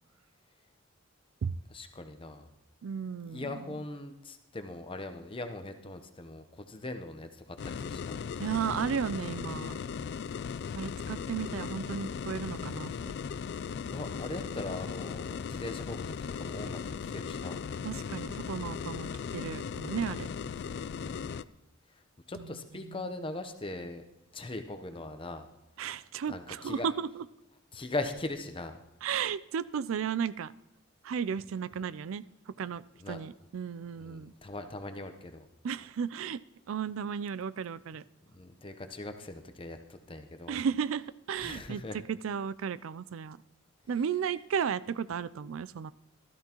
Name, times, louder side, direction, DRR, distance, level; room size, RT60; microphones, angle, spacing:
voice 1, 1.7-2.5 3.3-8.2 9.9-10.2 13.9-17.6 21.0-21.4 21.9-22.0 22.3-24.0 24.3-25.5 26.3-26.9 27.7-28.8 33.0-33.2 34.0-35.5 38.3-40.6 41.4-42.0, left 2 dB, 25° left, 7 dB, 0.8 m, -40 dB
voice 2, 2.8-3.6 8.4-9.8 10.8-12.9 17.8-20.3 22.3-23.1 25.8-27.3 29.0-30.5 31.0-34.3 35.6-36.4 36.7-38.0 40.5-41.8 42.1-43.4 43.9-45.9, right 7 dB, 75° right, 17 dB, 0.4 m, -34 dB
sound 1, 7.6-21.4, left 6 dB, 55° left, 0.3 m, -37 dB
15.5 x 13.0 x 3.0 m, 0.91 s
head